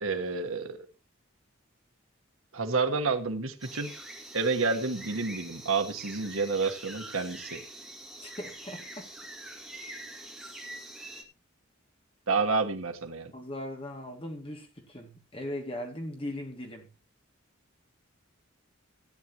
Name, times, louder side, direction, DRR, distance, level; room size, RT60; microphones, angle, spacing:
voice 1, 0.0-0.9 2.5-4.0 4.3-7.6 12.3-13.3, right 4 dB, 85° right, 1.4 m, -29 dB
sound 1, 3.6-11.2, right 1 dB, ahead, 2.3 m, -44 dB
voice 2, 8.2-9.1 13.3-16.9, left 1 dB, 25° left, 2.4 m, -39 dB
16.5 x 9.7 x 3.0 m
head